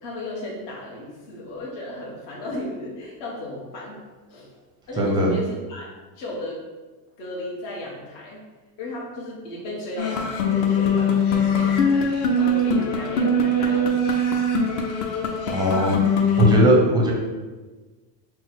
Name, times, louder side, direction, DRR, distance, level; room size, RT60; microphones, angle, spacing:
voice 1, 0.0-4.0 4.3-4.5 4.9-5.9 6.1-6.6 7.2-8.4 8.8-14.6, left 1 dB, 55° left, -4 dB, 1.2 m, -35 dB
voice 2, 5.0-5.3 15.5-16.0 16.3-17.1, equal, 10° right, -2 dB, 0.5 m, -18 dB
sound 1, 10.0-16.6, left 2 dB, 40° left, 0.5 m, -22 dB
4.2 x 2.2 x 4.0 m, 1.3 s
supercardioid pair, 130°, 49 cm